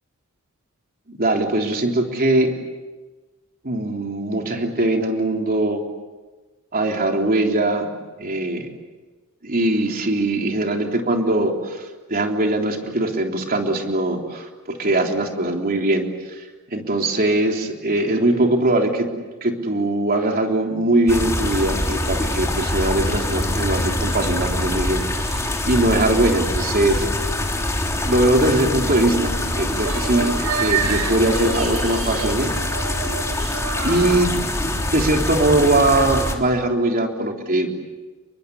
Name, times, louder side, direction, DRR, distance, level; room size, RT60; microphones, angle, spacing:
voice 1, 1.1-2.5 3.6-5.8 6.7-7.9 8.2-8.7 9.4-19.1 19.4-27.1 28.1-32.5 32.8-32.9 33.8-34.3 34.6-37.7, right 1 dB, 45° right, 2 dB, 3.6 m, -21 dB
sound 1, 21.1-36.3, left 1 dB, 15° left, 3.4 m, -24 dB
sound 2, 28.5-34.6, right 6 dB, 70° right, 2.2 m, -30 dB
30.0 x 24.0 x 8.3 m, 1.2 s
head